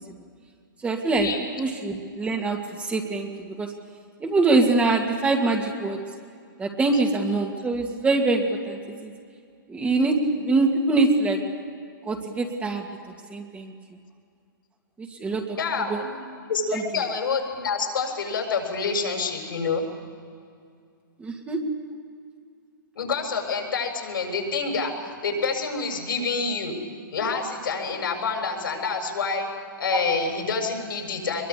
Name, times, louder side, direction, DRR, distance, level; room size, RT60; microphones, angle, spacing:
voice 1, 0.8-1.3 1.6-3.3 3.6-3.7 4.2-6.0 6.6-9.1 9.7-11.4 12.1-12.8 13.3-13.7 15.0-15.6 15.9-16.0 16.7-16.8 21.2-21.6 29.9-30.0, right 3 dB, 10° right, 2 dB, 2.2 m, -24 dB
voice 2, 15.6-16.1 16.5-19.8 23.0-26.7 27.1-29.5 29.8-31.5, left 4 dB, 75° left, 2 dB, 7.3 m, -27 dB
23.0 x 22.5 x 8.4 m, 2.3 s
hypercardioid pair, 135°, 11 cm